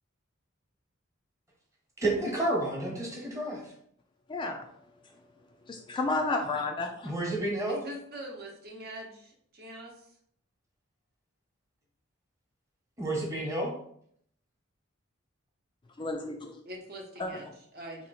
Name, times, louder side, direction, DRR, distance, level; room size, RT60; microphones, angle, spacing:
voice 1, 2.0-3.6 7.0-7.8 13.0-13.7, right 1 dB, 15° right, -2 dB, 1.0 m, -30 dB
voice 2, 5.7-7.1 16.0-16.6 17.2-17.3, left 3 dB, 25° left, 3 dB, 0.3 m, -32 dB
voice 3, 7.6-10.2 16.7-18.1, right 1 dB, 50° right, 0 dB, 0.9 m, -43 dB
3.0 x 2.8 x 4.1 m, 0.67 s
head